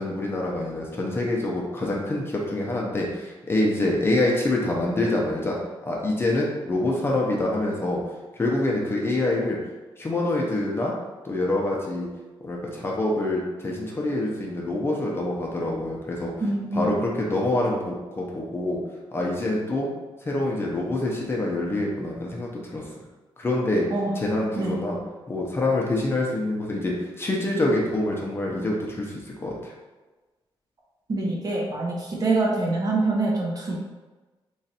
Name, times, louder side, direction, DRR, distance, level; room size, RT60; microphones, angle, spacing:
voice 1, 0.0-5.6 5.8-8.0 8.4-9.6 10.0-10.9 11.2-12.1 12.4-16.3 16.7-18.8 19.1-19.9 20.2-22.8 23.4-23.9 24.2-25.0 25.3-29.7, left 2 dB, 25° left, -2 dB, 0.7 m, -26 dB
voice 2, 16.4-17.0 23.9-24.1 24.5-24.7 31.1-33.8, right 2 dB, 40° right, -2 dB, 0.8 m, -25 dB
3.1 x 2.5 x 4.2 m, 1.2 s
wide cardioid pair, 130°, 9 cm